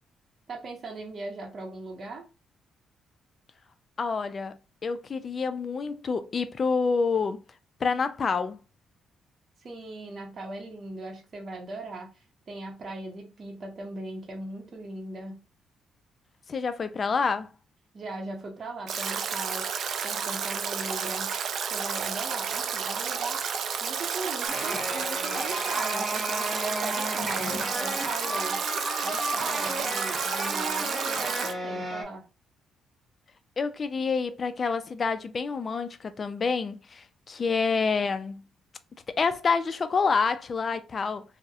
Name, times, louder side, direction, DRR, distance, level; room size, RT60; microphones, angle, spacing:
voice 1, 0.5-2.2 9.6-15.4 17.9-19.7 20.0-21.4 21.7-23.4 23.8-28.6 29.0-32.2, right 2 dB, 45° right, 0.7 m, -38 dB
voice 2, 4.0-4.6 4.8-7.4 7.8-8.6 16.5-17.5 33.6-38.4 39.1-41.2, left 5 dB, 40° left, 0.3 m, -27 dB
Stream / Drip / Trickle dribble, 18.9-31.5, right 6 dB, 65° right, 0.3 m, -31 dB
sound 1, 24.5-32.0, equal, 5° right, 0.7 m, -33 dB
2.6 x 2.0 x 2.3 m
cardioid pair, 90°, 0 cm